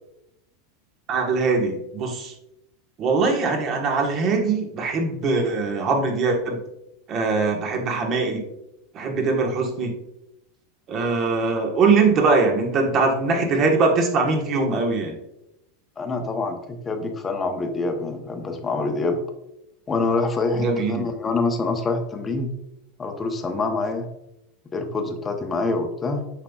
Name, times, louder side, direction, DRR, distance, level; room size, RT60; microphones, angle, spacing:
voice 1, 1.1-2.3 3.0-6.6 7.1-8.4 8.9-9.9 10.9-15.2 20.5-21.0, right 4 dB, 40° right, 2 dB, 1.4 m, -22 dB
voice 2, 16.0-19.2 19.9-22.5 23.0-24.1 24.7-26.3, left 3 dB, 20° left, 4 dB, 0.9 m, -26 dB
7.2 x 5.5 x 2.4 m, 0.85 s
supercardioid pair, 125°, 0 cm